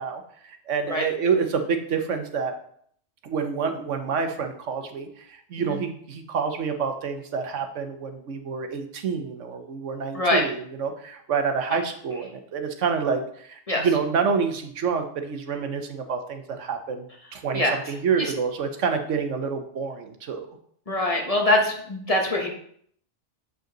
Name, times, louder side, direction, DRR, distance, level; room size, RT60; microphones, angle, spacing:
voice 1, 0.0-2.5 3.2-17.1 17.3-20.6, right 5 dB, 80° right, 6 dB, 1.2 m, -28 dB
voice 2, 10.1-10.5 13.7-13.9 17.5-17.8 18.2-18.3 20.9-22.5, left 1 dB, 30° left, 1 dB, 1.2 m, -23 dB
7.9 x 5.2 x 3.8 m, 0.63 s
omnidirectional pair, 1.2 m